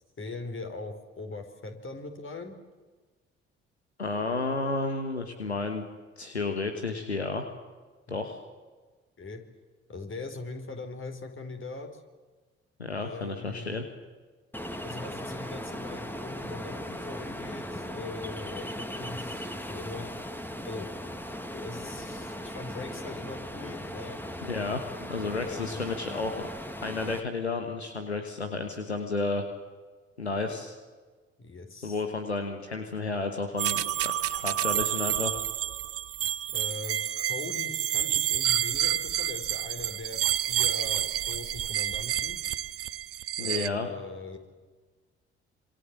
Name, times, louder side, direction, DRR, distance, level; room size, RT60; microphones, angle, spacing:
voice 1, 0.2-2.6 8.1-8.2 9.2-9.4 9.9-12.0 13.0-13.8 14.8-20.1 20.6-20.9 21.5-24.2 25.4-25.8 31.4-32.0 36.5-42.4 43.4-44.4, left 3 dB, 40° left, 5 dB, 4.9 m, -41 dB
voice 2, 4.0-5.8 6.2-7.5 8.1-8.4 12.8-13.8 24.4-26.5 26.8-29.5 30.2-30.7 31.8-35.4 43.4-43.9, left 3 dB, 90° left, 6 dB, 1.3 m, -32 dB
Ocean, 14.5-27.2, equal, 5° left, 2.5 m, -38 dB
sound 1, 33.6-43.7, right 12 dB, 45° right, 0.8 m, -29 dB
27.0 x 26.5 x 7.7 m, 1.3 s
figure-of-eight pair, 40°, 32 cm